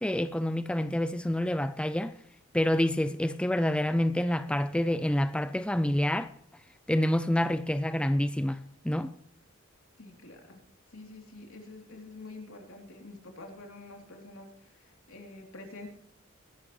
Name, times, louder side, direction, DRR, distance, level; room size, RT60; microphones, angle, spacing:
voice 1, 0.0-2.1 2.5-6.3 6.9-9.1, left 1 dB, 5° left, 0.4 m, -27 dB
voice 2, 10.0-10.6 10.9-15.9, left 2 dB, 80° left, 3.3 m, -47 dB
21.0 x 11.5 x 3.2 m
head